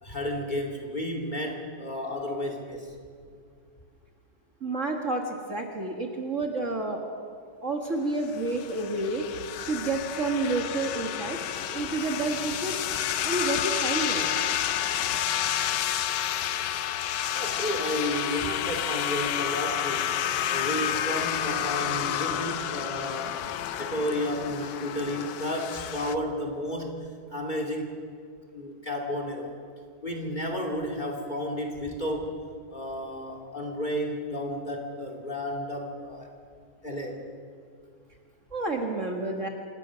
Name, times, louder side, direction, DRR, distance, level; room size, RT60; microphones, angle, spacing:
voice 1, 0.0-2.9 17.3-20.1 20.5-23.3 23.8-27.0 27.3-28.0 28.5-29.5 30.0-32.4 32.7-36.3 36.8-37.3, left 1 dB, 25° left, 2 dB, 2.5 m, -32 dB
voice 2, 4.6-5.2 5.5-7.2 7.6-9.2 9.6-11.4 11.7-12.8 13.2-14.3 38.5-39.5, right 3 dB, 40° right, 2 dB, 1.9 m, -29 dB
sound 1, 8.2-26.2, left 10 dB, 70° left, 1.3 m, -30 dB
26.0 x 18.5 x 6.3 m, 2.2 s
omnidirectional pair, 2.2 m